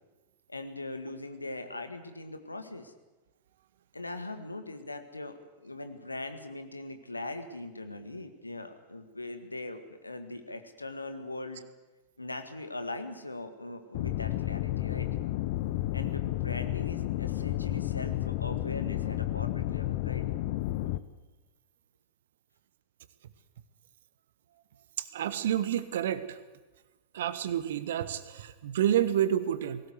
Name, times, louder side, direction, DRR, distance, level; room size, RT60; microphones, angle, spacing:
voice 1, 0.5-2.9 3.9-11.6 12.2-15.1 15.9-20.2, left 2 dB, 80° left, 8 dB, 1.8 m, -40 dB
sound 1, 13.9-21.0, left 15 dB, 50° left, 0.9 m, -31 dB
voice 2, 25.0-26.4 27.1-29.8, right 10 dB, 60° right, 13 dB, 1.4 m, -29 dB
20.0 x 17.5 x 8.1 m, 1.2 s
figure-of-eight pair, 90°, 0 cm